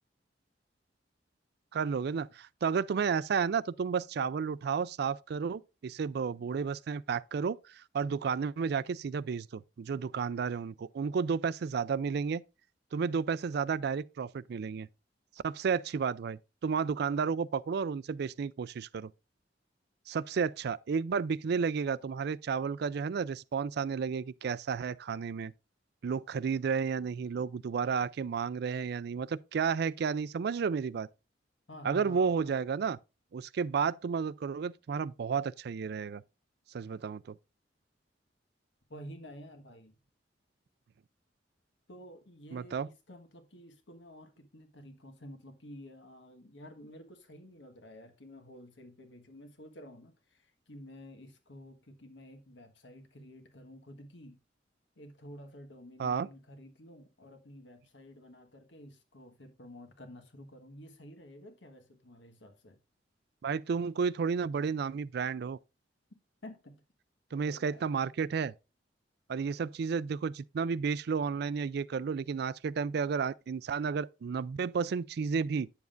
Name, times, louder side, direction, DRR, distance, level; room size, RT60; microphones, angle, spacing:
voice 1, 1.7-12.4 12.9-14.9 15.4-19.1 20.1-25.5 26.0-31.1 31.8-33.0 33.3-36.2 36.7-37.3 42.5-42.9 56.0-56.3 63.4-65.6 67.3-68.5 69.3-75.7, right 6 dB, 65° right, 0.4 m, -32 dB
voice 2, 31.7-32.5 38.9-39.9 41.9-54.4 55.0-62.8 66.4-66.8 67.3-67.9, equal, 90° left, 1.4 m, -51 dB
9.4 x 7.2 x 2.5 m
head